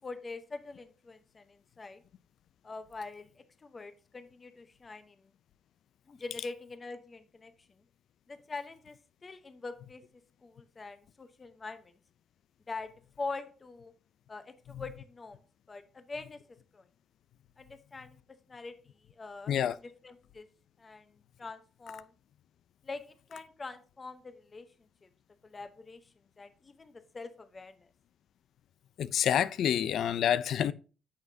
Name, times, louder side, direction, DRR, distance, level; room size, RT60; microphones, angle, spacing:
voice 1, 0.0-2.0 2.6-5.3 6.1-7.8 8.3-10.0 10.4-11.9 12.7-12.9 13.2-13.9 14.3-15.4 15.7-16.4 16.7-16.9 17.6-18.2 18.5-18.7 19.1-19.5 20.0-20.5 20.8-22.1 22.8-23.0 23.3-24.7 25.0-25.1 25.4-27.9, left 3 dB, 30° left, 0.9 m, -44 dB
voice 2, 29.0-30.7, left 9 dB, 70° left, 0.4 m, -27 dB
9.3 x 6.4 x 2.7 m
cardioid pair, 90°, 0 cm